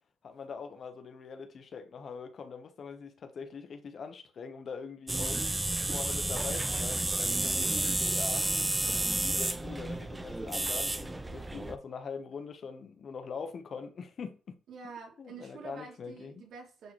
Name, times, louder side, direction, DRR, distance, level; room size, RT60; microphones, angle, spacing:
voice 1, 0.2-5.5 5.9-8.5 9.2-14.6 15.2-16.4, left 5 dB, 50° left, 1.2 m, -43 dB
sound 1, 5.1-11.8, right 2 dB, 15° right, 0.6 m, -31 dB
voice 2, 14.7-16.9, right 5 dB, 70° right, 3.1 m, -47 dB
9.3 x 4.0 x 3.2 m
cardioid pair, 90°, 0 cm